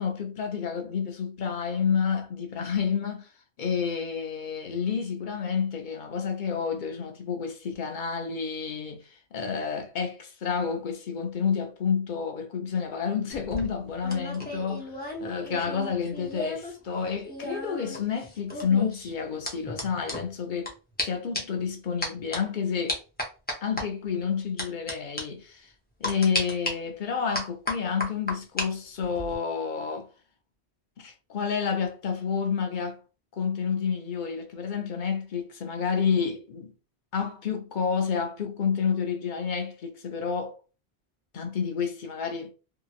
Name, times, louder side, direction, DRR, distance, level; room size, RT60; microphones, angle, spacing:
voice 1, 0.0-3.3 3.6-10.1 10.4-14.9 15.2-20.7 21.0-23.0 23.6-25.7 26.0-30.1 31.0-33.0 33.3-36.7 37.1-40.6 41.3-42.5, left 6 dB, 55° left, 0.7 m, -29 dB
sound 1, 13.3-16.7 17.0-20.7 21.0-21.1 21.3-21.6 22.0-22.4 22.9-23.8 24.6-24.9 25.2-25.3 26.0-26.7 27.3-28.7 29.0-29.4, left 1 dB, 10° left, 0.6 m, -33 dB
2.7 x 2.7 x 2.4 m
omnidirectional pair, 1.1 m